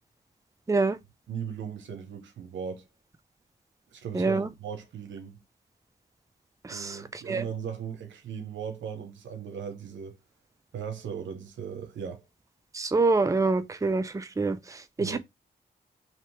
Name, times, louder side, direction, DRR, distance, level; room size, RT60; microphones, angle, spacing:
voice 1, 1.3-2.8 3.9-5.4 6.7-10.2 10.7-12.2 15.0-15.2, right 7 dB, 80° right, 0.8 m, -37 dB
voice 2, 4.1-4.5 6.6-7.4 12.7-15.2, right 3 dB, 15° right, 0.5 m, -26 dB
2.9 x 2.9 x 4.4 m
supercardioid pair, 45°, 19 cm